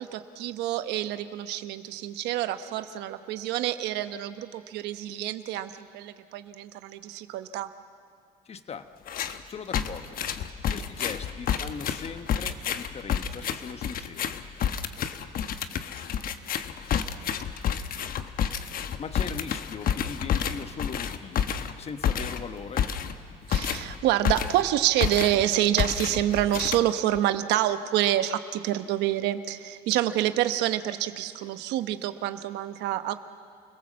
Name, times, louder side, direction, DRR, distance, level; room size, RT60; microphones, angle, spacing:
voice 1, 0.0-7.7 23.5-33.1, right 13 dB, 90° right, 10 dB, 1.0 m, -27 dB
voice 2, 8.4-8.9 9.4-10.2 10.7-14.4 19.0-21.5 21.8-22.9, left 6 dB, 40° left, 10 dB, 1.2 m, -39 dB
sound 1, 9.1-9.4 9.7-24.7 25.0-25.5 25.8-27.2, left 8 dB, 60° left, 1.1 m, -29 dB
29.5 x 17.5 x 7.5 m, 2.2 s
cardioid pair, 110°, 17 cm